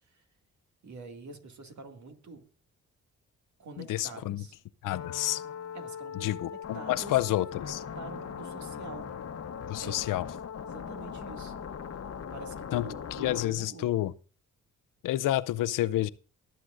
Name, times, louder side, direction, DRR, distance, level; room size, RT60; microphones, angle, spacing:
voice 1, 0.8-2.4 3.6-4.6 5.7-9.1 9.8-10.2 10.6-11.5 12.3-13.9, right 3 dB, 60° right, 2.2 m, -46 dB
voice 2, 3.8-4.4 4.8-5.4 6.2-7.8 9.7-10.3 12.7-12.9 13.2-14.1 15.0-16.1, left 14 dB, 75° left, 0.6 m, -29 dB
sound 1, 4.9-13.5, left 7 dB, 50° left, 1.0 m, -40 dB
23.0 x 7.8 x 2.5 m
supercardioid pair, 60°, 32 cm